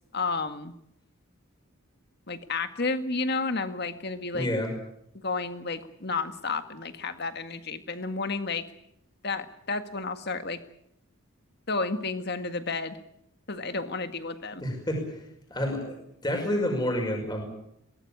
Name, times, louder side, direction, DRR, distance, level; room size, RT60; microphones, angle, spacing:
voice 1, 0.1-0.7 2.3-4.5 5.2-8.6 9.2-10.6 11.7-13.0 13.5-14.6, left 3 dB, 50° left, 9 dB, 1.8 m, -31 dB
voice 2, 4.3-4.7 14.6-15.0 15.5-15.9 16.2-17.4, left 1 dB, 20° left, 2 dB, 5.5 m, -28 dB
22.0 x 18.5 x 8.6 m, 0.76 s
head